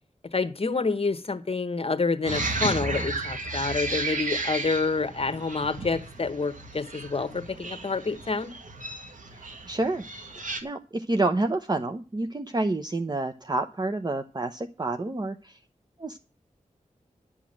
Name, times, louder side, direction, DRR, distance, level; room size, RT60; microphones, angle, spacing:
voice 1, 0.3-8.5, left 4 dB, 45° left, 1.1 m, -28 dB
sound 1, 2.2-10.6, right 2 dB, 75° right, 2.1 m, -33 dB
voice 2, 9.3-10.0 10.6-15.6 16.0-16.2, right 2 dB, 30° right, 0.9 m, -28 dB
11.5 x 6.1 x 8.7 m
wide cardioid pair, 75°, 13 cm